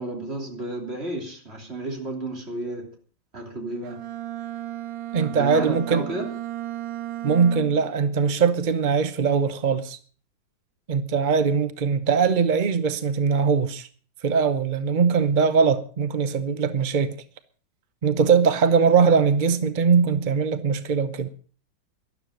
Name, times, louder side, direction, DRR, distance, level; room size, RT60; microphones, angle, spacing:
voice 1, 0.0-3.0 3.3-4.0 5.1-6.3, right 2 dB, 35° right, 3.3 m, -32 dB
Bowed string instrument, 3.8-8.0, right 14 dB, 90° right, 1.6 m, -34 dB
voice 2, 5.1-6.1 7.2-10.0 10.9-13.9 14.2-17.2 18.0-21.3, right 6 dB, 50° right, 0.6 m, -21 dB
12.5 x 12.0 x 6.4 m
omnidirectional pair, 2.0 m